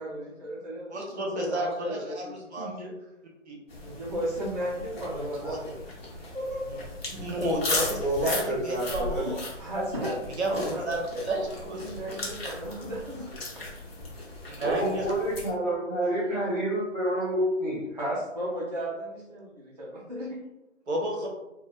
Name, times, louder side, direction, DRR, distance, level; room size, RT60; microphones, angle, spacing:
voice 1, 0.0-2.9 3.8-5.9 6.1-6.8 9.1-10.2 10.7-13.3 16.0-16.1 17.9-20.4, equal, 35° right, -8 dB, 0.4 m, -35 dB
voice 2, 0.9-2.8 3.5-3.6 5.0-5.6 6.7-6.8 7.1-9.4 10.2-10.6 10.8-12.2 14.5-15.1 20.9-21.3, right 1 dB, 60° right, 0 dB, 0.7 m, -32 dB
sound 1, 3.7-15.5, left 2 dB, 50° left, 0.8 m, -37 dB
voice 3, 8.0-9.2 10.5-10.7 14.6-17.8, right 1 dB, 5° left, -21 dB, 0.7 m, -28 dB
2.7 x 2.0 x 2.4 m, 0.98 s
figure-of-eight pair, 155°, 38 cm